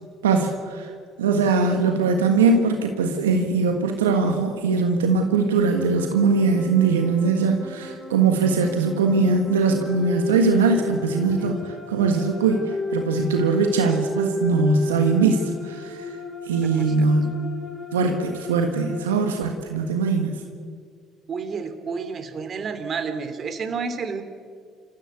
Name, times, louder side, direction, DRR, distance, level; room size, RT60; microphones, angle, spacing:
voice 1, 0.2-0.9 1.2-16.2 16.4-17.4 17.9-20.4, right 4 dB, 85° right, 4 dB, 1.6 m, -21 dB
sound 1, 5.6-19.0, left 2 dB, 25° left, 7.2 m, -33 dB
voice 2, 16.6-17.1 21.3-24.2, right 5 dB, 45° right, 10 dB, 2.7 m, -31 dB
28.0 x 15.0 x 8.3 m, 2.1 s
hypercardioid pair, 55°, 0 cm